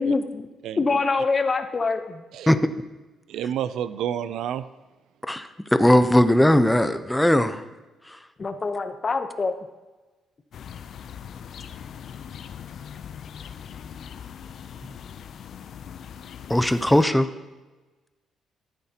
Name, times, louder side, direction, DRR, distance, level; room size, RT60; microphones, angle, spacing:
voice 1, 0.0-0.5 0.8-2.2 8.4-9.5, left 4 dB, 35° left, 8 dB, 0.8 m, -25 dB
voice 2, 0.6-1.0 2.3-2.5 3.3-4.7, right 10 dB, 80° right, 14 dB, 0.4 m, -30 dB
voice 3, 5.3-7.6 8.1-8.2 16.5-17.3, left 1 dB, 5° left, 11 dB, 0.6 m, -19 dB
sound 1, 10.5-17.0, left 8 dB, 65° left, 0.5 m, -40 dB
14.0 x 9.1 x 2.9 m, 1.2 s
cardioid pair, 90°, 0 cm